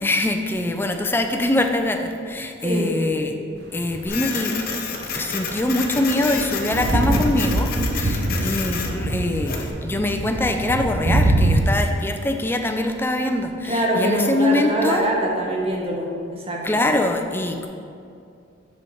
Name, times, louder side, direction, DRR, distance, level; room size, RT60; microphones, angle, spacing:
voice 1, 0.0-3.3 3.7-4.6 5.1-15.0 16.6-17.7, left 1 dB, 10° left, 4 dB, 0.4 m, -23 dB
voice 2, 2.6-2.9 13.6-16.8, right 1 dB, 30° right, -2 dB, 0.9 m, -24 dB
sound 1, 3.8-4.3 5.2-11.7, right 1 dB, 55° right, 0.6 m, -23 dB
Printer, 4.1-9.7, left 5 dB, 50° left, 0.7 m, -30 dB
5.5 x 4.5 x 5.6 m, 2.4 s
head